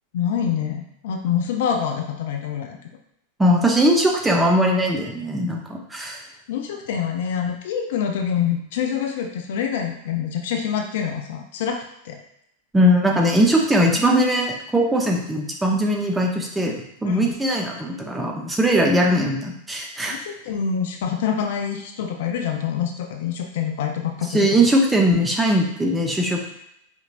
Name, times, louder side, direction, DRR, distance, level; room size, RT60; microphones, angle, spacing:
voice 1, 0.1-2.8 6.5-12.2 17.0-17.3 20.1-24.5, left 8 dB, 55° left, 4 dB, 0.4 m, -26 dB
voice 2, 3.4-6.2 12.7-16.7 17.0-20.2 24.3-26.4, equal, 10° right, 0 dB, 0.6 m, -20 dB
4.4 x 2.9 x 2.5 m, 0.78 s
figure-of-eight pair, 90°, 0 cm